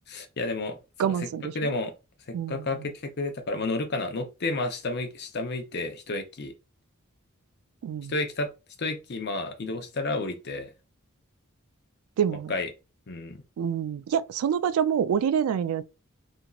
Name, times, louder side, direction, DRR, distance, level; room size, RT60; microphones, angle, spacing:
voice 1, 0.1-1.3 1.5-1.9 2.3-6.5 8.1-8.5 8.8-10.7 12.5-12.7 13.1-13.4, left 2 dB, 50° left, 0.6 m, -31 dB
voice 2, 1.0-1.7 2.3-2.9 7.8-8.1 12.2-12.5 13.6-15.8, right 8 dB, 85° right, 0.3 m, -27 dB
2.9 x 2.6 x 2.3 m
head